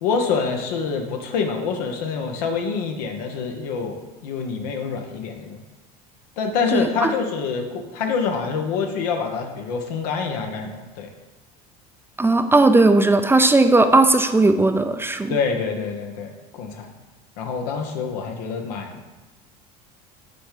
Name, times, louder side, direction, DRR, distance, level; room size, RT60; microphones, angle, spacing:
voice 1, 0.0-5.6 6.4-11.1 15.3-16.9 17.4-19.1, left 5 dB, 80° left, 3 dB, 1.1 m, -26 dB
voice 2, 6.7-7.1 12.2-15.4, right 2 dB, 10° right, 7 dB, 0.5 m, -17 dB
6.6 x 3.5 x 5.8 m, 1.2 s
supercardioid pair, 90°, 20 cm